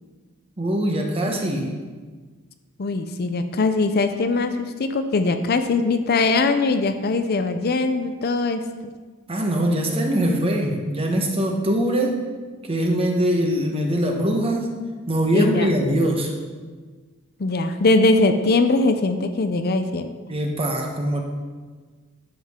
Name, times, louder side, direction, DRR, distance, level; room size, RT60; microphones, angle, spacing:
voice 1, 0.6-1.7 9.3-12.2 12.7-14.7 15.1-16.3 20.3-21.2, right 1 dB, 25° right, 2 dB, 1.2 m, -22 dB
voice 2, 2.8-8.6 15.3-15.7 17.4-20.1, left 3 dB, 45° left, 8 dB, 0.5 m, -21 dB
11.5 x 7.5 x 3.7 m, 1.4 s
head